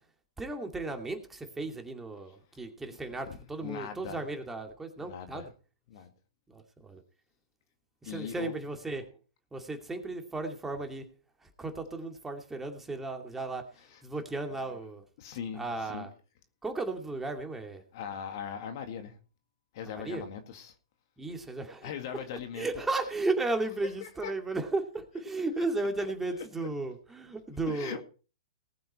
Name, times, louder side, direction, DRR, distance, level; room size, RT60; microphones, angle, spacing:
voice 1, 0.4-5.5 6.5-7.0 8.0-9.1 9.5-11.1 11.4-13.6 14.0-15.0 15.5-16.1 16.6-17.8 19.9-20.3 21.2-21.9 22.5-28.0, right 3 dB, 10° right, 2.4 m, -35 dB
voice 2, 3.3-4.3 5.0-5.5 5.9-6.1 8.0-8.5 13.8-14.0 14.5-14.8 15.2-16.1 17.9-19.2 19.7-20.8 21.8-22.7 24.0-24.3 26.4-26.7 27.7-28.0, left 8 dB, 55° left, 2.0 m, -40 dB
19.0 x 7.8 x 4.3 m
hypercardioid pair, 115°, 3 cm